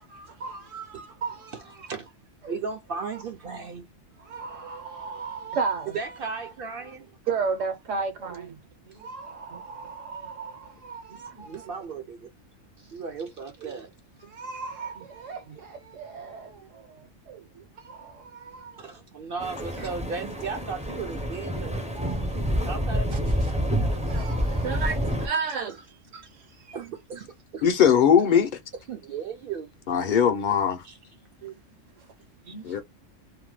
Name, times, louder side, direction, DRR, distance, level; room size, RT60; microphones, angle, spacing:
voice 1, 0.1-1.9 2.4-2.5 3.1-3.2 3.5-3.6 4.2-6.1 6.4-6.5 6.8-6.9 7.3-8.6 8.9-11.7 13.6-13.8 14.2-16.5 17.3-18.9 22.0-22.5 23.1-23.2 24.1-25.8 26.1-26.8 31.4-31.6 32.4-32.8, right 5 dB, 80° right, 1.2 m, -35 dB
voice 2, 2.5-3.9 5.9-7.1 11.4-12.3 12.8-13.9 18.8-23.9 26.7-27.7 28.9-29.7 30.8-30.9, right 5 dB, 60° right, 0.6 m, -36 dB
sound 1, 19.4-25.3, equal, 10° right, 0.4 m, -28 dB
voice 3, 27.6-28.5 29.9-30.8 32.6-32.8, left 8 dB, 55° left, 0.6 m, -20 dB
2.7 x 2.2 x 3.1 m
omnidirectional pair, 1.3 m